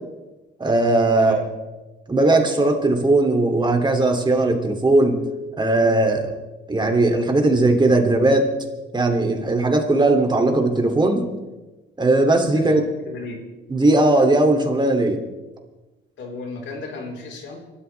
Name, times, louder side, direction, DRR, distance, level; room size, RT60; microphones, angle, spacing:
voice 1, 0.6-1.4 2.1-5.2 5.6-6.3 6.7-8.5 8.9-11.3 12.0-12.8 13.7-15.2, right 2 dB, 20° right, 3 dB, 2.9 m, -18 dB
voice 2, 1.2-1.5 12.6-13.4 16.2-17.6, left 3 dB, 70° left, 1 dB, 4.4 m, -34 dB
29.5 x 13.0 x 3.5 m, 1.1 s
cardioid pair, 90°, 20 cm